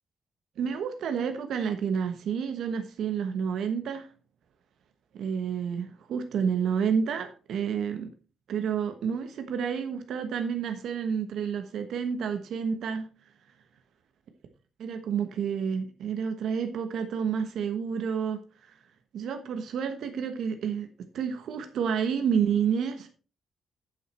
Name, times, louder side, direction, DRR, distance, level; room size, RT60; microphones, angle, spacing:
voice 1, 0.6-4.1 5.1-8.1 8.5-13.1 14.8-18.7 19.1-20.9 21.1-23.1, right 7 dB, 70° right, 1.1 m, -29 dB
9.0 x 7.7 x 4.2 m
wide cardioid pair, 175°, 0 cm